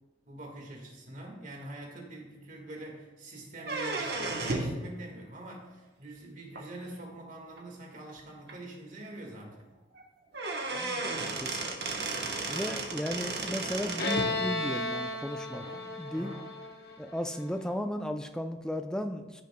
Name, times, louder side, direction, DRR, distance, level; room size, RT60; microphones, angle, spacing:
voice 1, 0.2-9.7 15.5-16.5, right 2 dB, 40° right, 0 dB, 1.7 m, -45 dB
sound 1, 3.6-4.8 6.5-6.6 7.6-7.7 8.1-8.2 8.5-8.6 10.0-10.1 10.3-14.3, right 3 dB, 55° right, 1.1 m, -34 dB
voice 2, 10.7-12.0 12.5-15.6 16.0-16.3 17.0-19.4, equal, 5° left, 6 dB, 0.4 m, -35 dB
Bowed string instrument, 14.0-17.5, left 2 dB, 55° left, 0.9 m, -34 dB
14.5 x 6.5 x 2.2 m, 1.2 s
head